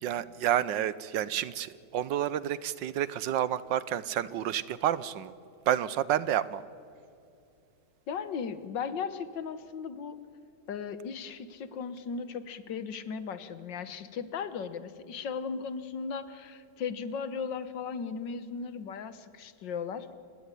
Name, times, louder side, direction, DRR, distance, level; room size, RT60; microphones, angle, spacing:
voice 1, 0.0-5.3 5.7-6.6, right 11 dB, 85° right, 17 dB, 1.5 m, -29 dB
voice 2, 8.1-10.2 10.7-20.1, left 6 dB, 80° left, 13 dB, 1.9 m, -37 dB
29.0 x 17.5 x 10.0 m, 2.5 s
omnidirectional pair, 1.9 m